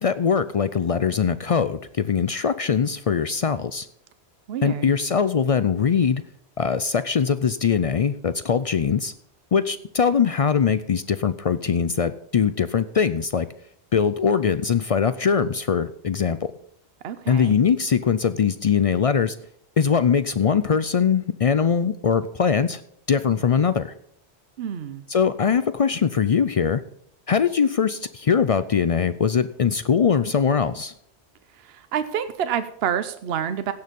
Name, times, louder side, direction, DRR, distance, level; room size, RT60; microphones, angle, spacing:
voice 1, 0.0-3.9 4.6-6.2 6.6-9.1 9.5-13.5 13.9-16.5 17.3-19.4 19.8-22.8 23.1-23.9 25.1-26.8 27.3-30.9, left 6 dB, 55° left, 14 dB, 0.4 m, -21 dB
voice 2, 4.5-4.9 17.0-17.6 24.6-25.0 31.7-33.7, right 9 dB, 70° right, 11 dB, 0.9 m, -28 dB
16.5 x 6.7 x 5.2 m, 0.69 s
omnidirectional pair, 1.1 m